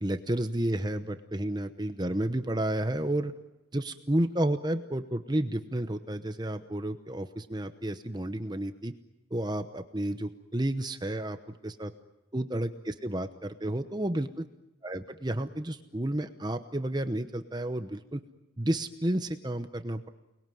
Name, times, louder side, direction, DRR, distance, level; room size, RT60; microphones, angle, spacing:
voice 1, 0.0-3.3 3.7-8.9 9.3-11.4 11.6-11.9 12.3-14.5 14.8-18.2 18.6-20.1, right 1 dB, 20° right, 9 dB, 0.9 m, -31 dB
29.5 x 21.0 x 9.3 m, 0.96 s
head